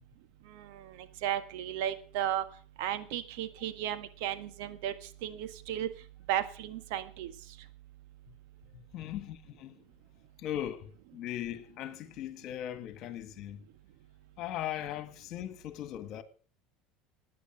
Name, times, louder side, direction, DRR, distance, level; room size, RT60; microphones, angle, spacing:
voice 1, 0.5-2.4 2.8-4.9 5.2-5.9 6.3-7.3, right 11 dB, 75° right, 1.7 m, -34 dB
voice 2, 8.7-9.8 10.4-13.6 14.4-16.2, left 12 dB, 55° left, 1.9 m, -39 dB
14.5 x 9.9 x 6.5 m
supercardioid pair, 100°, 0 cm